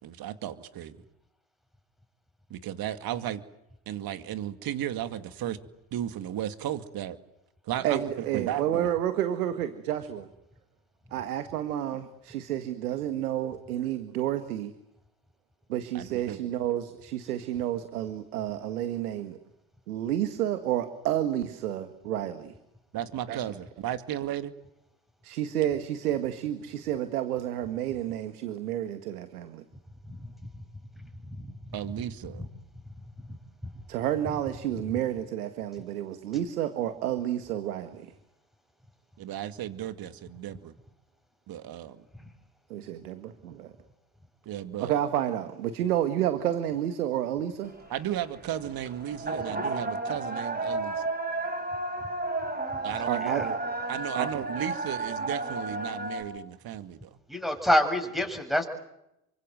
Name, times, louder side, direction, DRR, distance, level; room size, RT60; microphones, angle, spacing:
voice 1, 0.0-1.0 2.5-3.4 3.9-5.6 5.9-7.2 7.6-8.9 15.9-16.4 22.9-24.5 31.7-32.5 39.2-40.7 41.5-42.1 44.5-44.9 47.9-51.0 52.8-53.6 53.9-57.2, right 11 dB, 55° right, 11 dB, 2.4 m, -35 dB
voice 2, 7.8-10.3 11.1-14.7 15.7-19.4 19.9-22.5 23.3-23.4 25.2-29.6 33.9-38.1 42.7-43.7 44.8-47.7 53.1-53.4 54.1-54.3, right 11 dB, 85° right, 10 dB, 1.8 m, -30 dB
voice 3, 31.0-31.5 33.3-33.4 42.2-42.3 53.2-53.5 57.3-58.6, left 1 dB, ahead, 5 dB, 7.1 m, -27 dB
sound 1, 47.6-56.2, right 2 dB, 20° right, 7.9 m, -33 dB
28.0 x 24.5 x 7.9 m, 0.84 s
hypercardioid pair, 75°, 43 cm